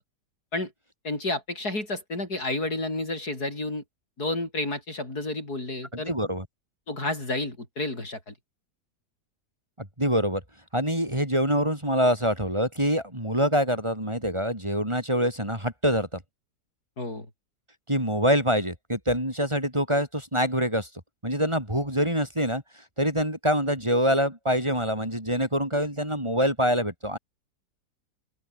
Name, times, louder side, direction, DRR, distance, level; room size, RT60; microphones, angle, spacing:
voice 1, 1.0-3.8 4.2-6.1 6.9-8.3 17.0-17.3, left 2 dB, 65° left, 7.2 m, -30 dB
voice 2, 5.9-6.5 9.8-10.4 10.7-16.2 17.9-20.9 21.2-22.6 23.0-27.2, equal, 15° right, 5.6 m, -25 dB
open air
omnidirectional pair, 1.8 m